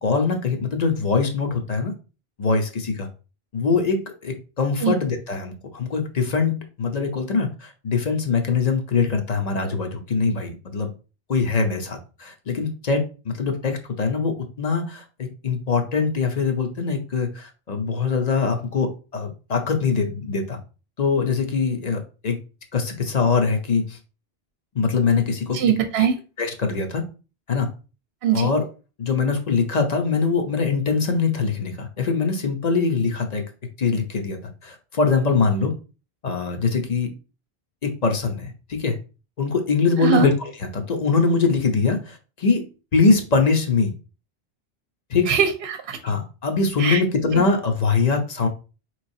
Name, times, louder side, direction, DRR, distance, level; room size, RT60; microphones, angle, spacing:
voice 1, 0.0-1.9 2.4-3.1 3.5-10.9 11.3-20.6 21.0-22.4 22.7-24.0 24.7-25.6 26.4-27.0 27.5-27.7 28.3-28.7 29.0-33.5 33.8-35.7 36.2-37.1 37.8-39.0 39.4-42.6 42.9-43.9 45.1-45.3 46.0-48.5, left 4 dB, 45° left, 4 dB, 0.8 m, -23 dB
voice 2, 25.5-26.1 28.2-28.5 40.0-40.3 45.3-46.0 46.8-47.0, right 7 dB, 75° right, 6 dB, 0.8 m, -21 dB
4.8 x 3.1 x 2.7 m, 0.33 s
omnidirectional pair, 1.1 m